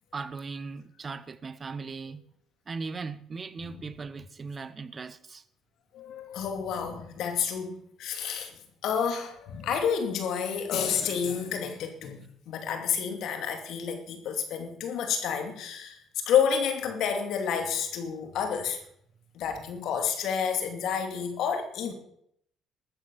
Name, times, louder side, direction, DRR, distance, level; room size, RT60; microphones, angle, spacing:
voice 1, 0.1-2.2 2.7-5.4, right 4 dB, 35° right, 1.0 m, -38 dB
voice 2, 5.9-12.2 12.5-18.8 19.3-21.9, left 7 dB, 75° left, 2.6 m, -30 dB
13.0 x 8.7 x 7.1 m
supercardioid pair, 75°, 0 cm